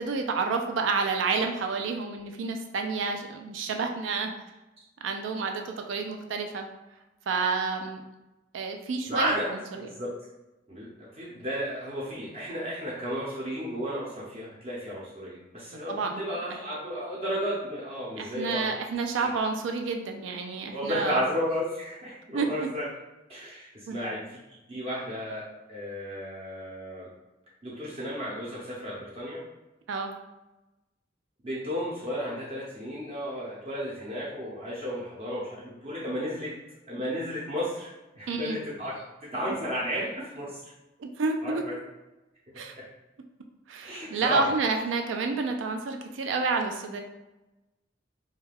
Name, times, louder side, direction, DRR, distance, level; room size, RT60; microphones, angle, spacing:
voice 1, 0.0-4.3 5.0-6.7 7.3-8.0 8.5-9.9 15.7-16.2 18.2-21.2 22.3-22.7 23.9-24.0 29.9-30.1 38.3-38.6 41.0-41.6 42.6-42.7 43.7-47.0, right 4 dB, 85° right, 4 dB, 0.4 m, -29 dB
voice 2, 9.1-9.5 9.7-10.1 10.7-18.7 19.1-19.3 20.7-22.9 23.3-24.4 24.7-27.1 27.6-29.4 31.4-36.5 36.9-40.6 41.4-41.8 42.8-42.9 43.8-44.5, equal, 30° right, -6 dB, 0.6 m, -33 dB
2.3 x 2.2 x 3.3 m, 1.0 s
head